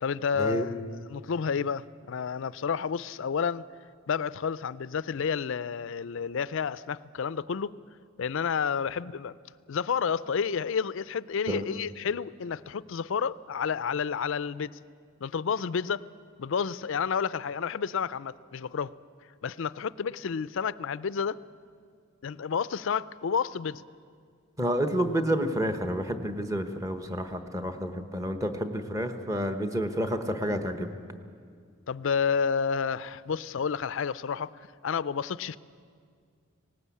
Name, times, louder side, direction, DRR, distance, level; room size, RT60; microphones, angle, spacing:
voice 1, 0.0-3.6 4.1-7.8 8.2-9.4 9.7-14.7 15.2-16.0 16.4-18.9 19.4-21.4 22.2-23.8 31.9-35.6, left 6 dB, 65° left, 18 dB, 0.4 m, -30 dB
voice 2, 24.6-30.9, equal, 15° right, 7 dB, 1.1 m, -29 dB
19.0 x 18.5 x 8.4 m, 2.1 s
head